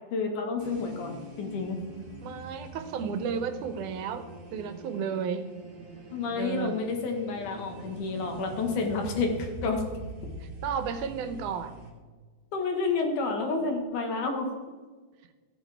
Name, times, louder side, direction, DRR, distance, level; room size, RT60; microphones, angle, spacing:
voice 1, 0.0-1.8 6.1-9.8 12.5-14.5, left 4 dB, 80° left, 3 dB, 3.1 m, -30 dB
sound 1, 0.6-11.9, right 2 dB, 25° right, 1.4 m, -43 dB
voice 2, 2.2-4.2 4.5-5.5 6.3-6.8 10.4-11.8, right 6 dB, 80° right, 9 dB, 2.4 m, -33 dB
14.5 x 9.2 x 3.5 m, 1.4 s
omnidirectional pair, 3.6 m